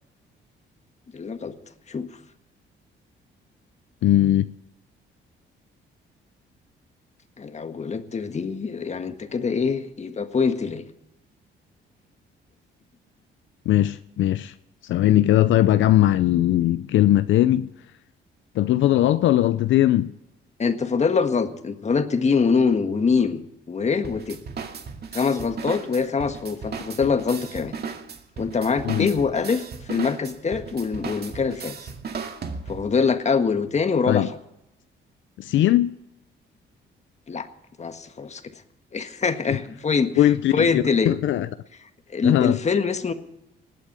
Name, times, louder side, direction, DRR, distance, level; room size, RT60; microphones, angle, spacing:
voice 1, 1.1-1.5 1.9-2.1 7.4-10.9 20.6-23.4 23.7-24.4 25.1-27.7 28.4-31.9 32.7-34.3 37.3-37.5 37.8-38.4 38.9-41.2 42.1-43.1, left 5 dB, 35° left, 1.6 m, -24 dB
voice 2, 4.0-4.5 13.7-14.5 14.8-17.7 18.5-20.1 28.8-29.1 34.1-34.3 35.4-36.0 40.2-41.5 42.2-42.6, left 13 dB, 75° left, 0.6 m, -19 dB
sound 1, 24.0-33.0, right 5 dB, 55° right, 2.2 m, -36 dB
20.0 x 8.6 x 8.3 m
cardioid pair, 90°, 20 cm